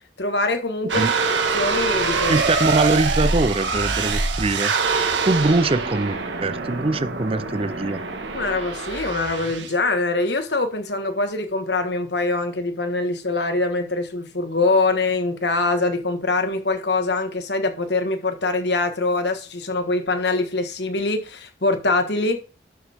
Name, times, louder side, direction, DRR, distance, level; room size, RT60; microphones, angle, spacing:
voice 1, 0.2-1.1 1.5-2.4 6.7-6.8 8.3-22.4, left 3 dB, 65° left, 1.5 m, -23 dB
sound 1, 0.9-9.8, right 4 dB, 80° right, 1.6 m, -24 dB
voice 2, 2.3-4.7 5.2-8.0, right 2 dB, 30° right, 0.6 m, -22 dB
11.5 x 6.9 x 3.5 m
head